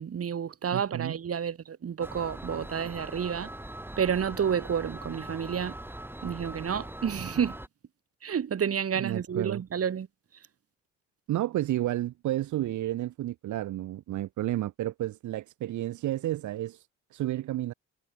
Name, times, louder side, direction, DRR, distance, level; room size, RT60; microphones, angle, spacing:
voice 1, 0.0-3.5 4.0-5.7 6.2-7.6 8.2-10.1, right 8 dB, 50° right, 4.2 m, -30 dB
voice 2, 0.7-1.2 8.9-9.6 11.3-17.7, right 14 dB, 75° right, 1.1 m, -31 dB
sound 1, 2.0-7.7, right 1 dB, 5° right, 3.1 m, -41 dB
cardioid pair, 90°, 30 cm